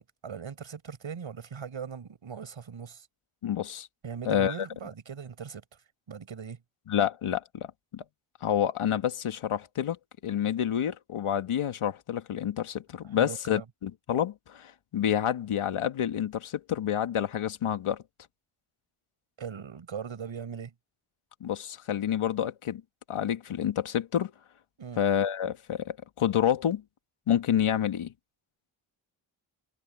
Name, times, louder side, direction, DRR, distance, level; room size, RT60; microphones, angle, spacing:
voice 1, 0.0-3.1 4.0-5.6 6.1-6.6 13.2-13.6 19.4-20.7 24.8-25.0, right 7 dB, 70° right, 6.7 m, -40 dB
voice 2, 3.4-3.9 4.3-4.5 6.9-8.0 8.4-10.0 10.2-18.0 21.4-22.8 23.1-24.3 25.0-26.8 27.3-28.1, left 9 dB, 80° left, 2.1 m, -28 dB
supercardioid pair, 45°, 49 cm